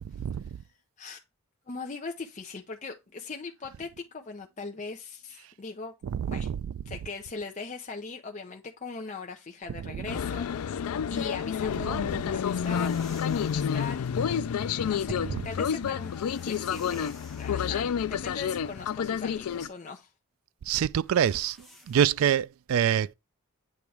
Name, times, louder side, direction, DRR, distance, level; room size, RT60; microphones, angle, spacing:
voice 1, 1.7-5.9 6.2-6.5 6.9-14.4 14.8-16.1 16.4-20.1, left 4 dB, 35° left, 0.6 m, -40 dB
voice 2, 6.0-6.6 9.9-10.1 11.9-12.0 15.2-15.5 20.7-21.6 21.9-23.1, right 9 dB, 70° right, 0.3 m, -26 dB
sound 1, 10.1-19.7, left 7 dB, 85° left, 0.4 m, -29 dB
sound 2, 12.3-14.0 15.8-17.6 21.0-22.3, left 1 dB, ahead, 1.0 m, -53 dB
8.5 x 3.0 x 4.7 m
head